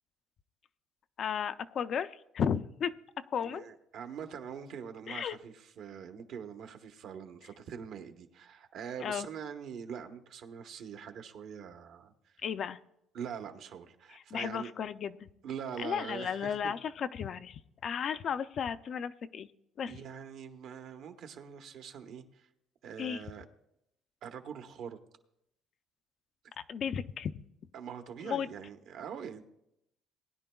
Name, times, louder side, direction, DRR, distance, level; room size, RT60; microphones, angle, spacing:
voice 1, 1.2-2.9 3.3-3.7 5.1-5.4 9.0-9.3 12.4-12.8 14.1-15.3 15.8-19.5 19.8-20.0 23.0-23.2 26.6-27.3 28.2-28.5, left 7 dB, 45° left, 12 dB, 0.4 m, -34 dB
voice 2, 3.4-12.4 13.1-14.7 15.4-16.7 19.9-22.5 22.8-23.4 24.2-25.0 27.7-29.4, right 7 dB, 60° right, 7 dB, 1.0 m, -43 dB
19.5 x 10.5 x 2.3 m, 0.79 s
cardioid pair, 140°, 0 cm